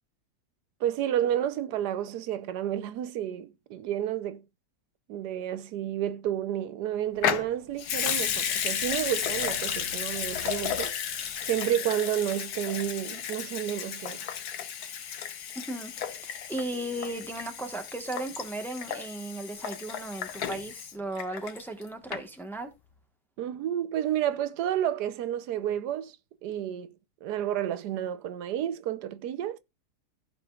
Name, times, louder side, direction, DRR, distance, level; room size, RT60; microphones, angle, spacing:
voice 1, 0.8-4.4 5.1-14.2 23.4-26.2 26.4-26.9 27.2-29.6, right 11 dB, 85° right, 1.2 m, -31 dB
Water tap faucet / Sink (filling or washing) / Liquid, 7.2-21.8 22.1-22.2, left 9 dB, 75° left, 1.4 m, -33 dB
voice 2, 15.5-15.9 16.2-22.7, right 1 dB, ahead, 1.0 m, -36 dB
15.5 x 5.2 x 2.3 m
omnidirectional pair, 1.7 m